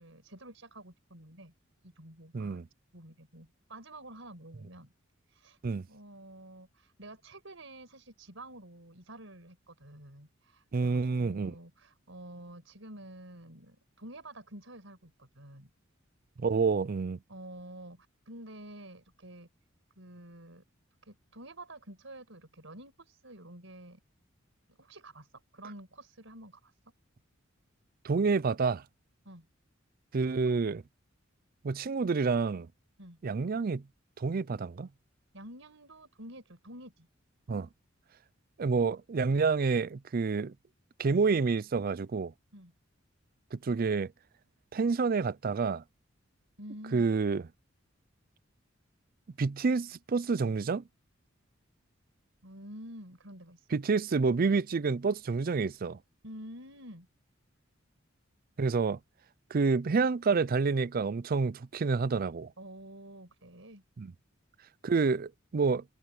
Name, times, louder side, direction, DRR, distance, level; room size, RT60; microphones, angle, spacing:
voice 1, 0.0-1.5 1.8-2.6 2.9-4.9 5.3-5.6 5.9-15.7 17.3-19.5 20.0-20.6 21.0-24.0 24.7-25.3 25.5-26.7 29.3-29.5 33.0-33.2 35.3-37.1 42.5-42.7 46.6-47.1 52.4-53.8 56.2-57.1 62.6-63.8, right 1 dB, 75° right, 5.7 m, -49 dB
voice 2, 2.3-2.7 5.6-5.9 10.7-11.6 16.4-17.2 28.0-28.8 30.1-30.8 31.6-32.7 33.2-33.8 34.2-34.9 37.5-37.7 38.6-40.5 41.0-42.3 43.5-44.1 44.7-45.8 46.9-47.4 49.4-50.8 53.7-56.0 58.6-59.0 59.5-62.5 64.0-64.1 64.8-65.8, right 4 dB, 45° right, 0.5 m, -28 dB
head